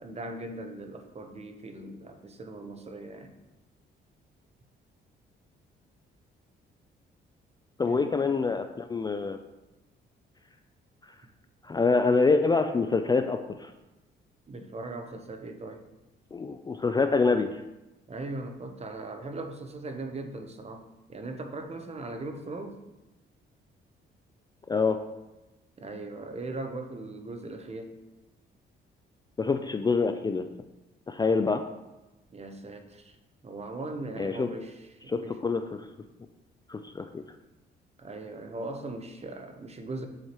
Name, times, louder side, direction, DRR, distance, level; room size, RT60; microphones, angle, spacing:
voice 1, 0.0-3.3 7.8-8.2 14.5-15.9 18.1-22.8 25.8-28.0 32.3-33.2 33.4-35.4 38.0-40.1, right 2 dB, 30° right, 6 dB, 0.8 m, -39 dB
voice 2, 7.8-9.4 11.6-13.7 16.3-17.6 24.7-25.0 29.4-30.4 31.1-31.6 34.2-34.5 35.1-35.8 36.7-37.1, left 4 dB, 20° left, 7 dB, 0.4 m, -26 dB
7.3 x 4.7 x 3.0 m, 1.0 s
cardioid pair, 90°, 20 cm